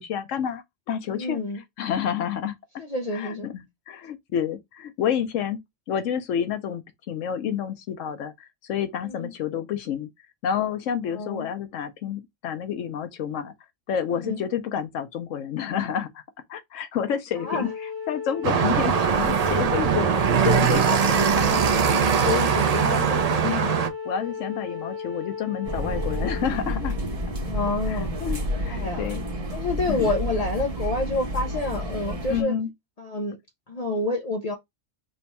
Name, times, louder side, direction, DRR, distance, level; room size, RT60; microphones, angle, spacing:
voice 1, 0.0-1.4 1.8-2.5 3.1-5.6 5.9-10.1 10.4-13.5 13.9-16.2 16.5-21.8 22.3-27.0 27.9-29.2 29.8-30.1 32.3-32.7, left 8 dB, 85° left, 1.1 m, -29 dB
voice 2, 1.1-1.6 2.8-3.5 9.1-9.3 11.1-11.5 14.1-14.4 17.4-17.7 21.3-21.6 23.3-23.6 27.4-28.1 28.7-29.1 29.5-32.5 33.0-33.4 33.7-34.5, left 2 dB, 50° left, 0.4 m, -28 dB
Wind instrument woodwind instrument, 17.4-26.5, left 6 dB, 30° left, 1.2 m, -34 dB
sound 1, 18.4-23.9, right 7 dB, 70° right, 0.3 m, -21 dB
sound 2, 25.6-32.4, equal, 35° right, 0.8 m, -30 dB
3.3 x 2.3 x 4.0 m
omnidirectional pair, 1.3 m